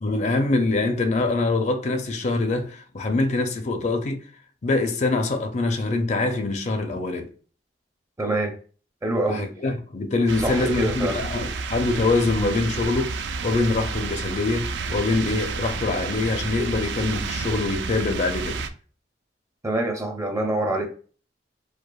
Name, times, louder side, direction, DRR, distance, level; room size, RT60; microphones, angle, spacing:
voice 1, 0.0-4.2 4.6-7.3 9.3-18.6, left 3 dB, 40° left, 0.5 m, -24 dB
voice 2, 8.2-8.6 9.0-9.5 10.4-11.2 19.6-20.9, right 1 dB, 15° right, 0.5 m, -25 dB
sound 1, 10.3-18.7, right 4 dB, 80° right, 0.4 m, -30 dB
4.9 x 2.1 x 2.3 m
head